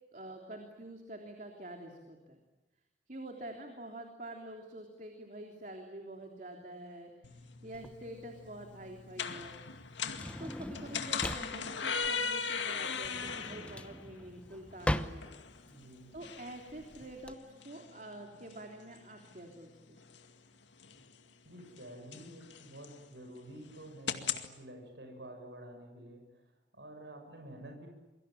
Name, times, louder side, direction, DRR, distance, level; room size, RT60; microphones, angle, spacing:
voice 1, 0.1-2.4 3.1-9.6 10.4-15.3 16.1-20.0, right 1 dB, 45° right, 3 dB, 3.3 m, -47 dB
sound 1, 7.2-24.5, left 6 dB, 80° left, 2.2 m, -41 dB
Drawer open or close, 7.7-17.3, left 1 dB, 5° left, 1.0 m, -40 dB
voice 2, 15.6-16.1 21.4-27.9, right 1 dB, 75° right, 3 dB, 6.8 m, -50 dB
28.5 x 23.0 x 9.0 m, 1.1 s
head